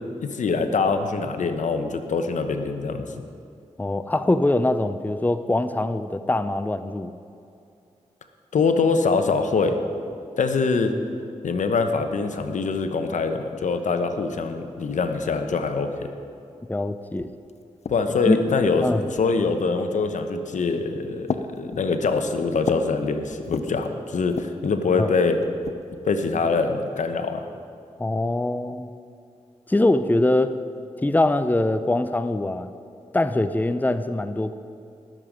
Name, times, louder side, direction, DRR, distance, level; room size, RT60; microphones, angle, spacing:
voice 1, 0.2-3.1 8.5-9.8 10.4-10.9 11.4-16.1 17.9-25.4 26.0-27.5, left 4 dB, 75° left, 7 dB, 1.0 m, -24 dB
voice 2, 3.8-7.1 16.7-17.3 18.3-18.4 18.8-19.1 25.0-25.1 28.0-28.9 29.7-30.5 31.0-32.7 33.1-34.6, left 2 dB, 15° left, 11 dB, 0.6 m, -23 dB
sound 1, 16.8-16.9 17.2-18.3 19.1-19.6 20.5-20.8 21.3-23.0 23.3-23.9 24.3-24.7 25.4-26.4, left 5 dB, 60° left, 0.7 m, -35 dB
19.5 x 7.7 x 5.2 m, 2.5 s
cardioid pair, 45°, 13 cm